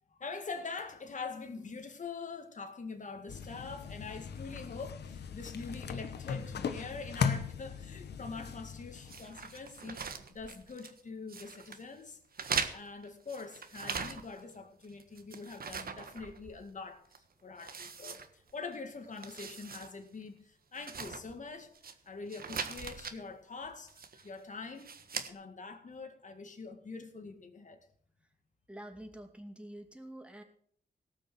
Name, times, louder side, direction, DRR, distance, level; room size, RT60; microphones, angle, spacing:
voice 1, 0.1-12.2 12.7-24.9 25.3-27.8, left 4 dB, 50° left, 2.1 m, -44 dB
sound 1, 3.3-9.8, left 6 dB, 90° left, 1.1 m, -38 dB
sound 2, 9.1-11.0 11.3-11.8 12.3-14.5 14.8-16.7 17.1-17.2 17.6-18.8 19.1-19.9 20.2-20.3 20.7-21.9 22.3-23.2 23.9-24.3 24.8-25.3, right 5 dB, 65° right, 1.4 m, -40 dB
voice 2, 28.7-30.4, right 1 dB, 5° right, 2.6 m, -47 dB
18.0 x 6.3 x 7.7 m
cardioid pair, 80°, 17 cm